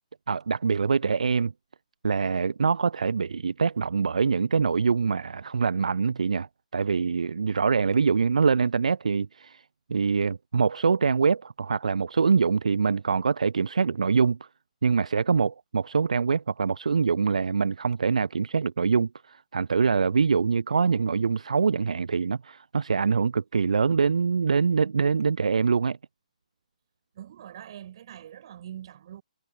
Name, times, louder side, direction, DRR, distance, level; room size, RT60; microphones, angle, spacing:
voice 1, 0.3-1.5 2.0-6.5 6.7-9.6 9.9-14.4 14.8-26.0, right 5 dB, 60° right, 0.6 m, -24 dB
voice 2, 27.1-29.2, right 10 dB, 40° right, 7.3 m, -43 dB
figure-of-eight pair, 130°, 4 cm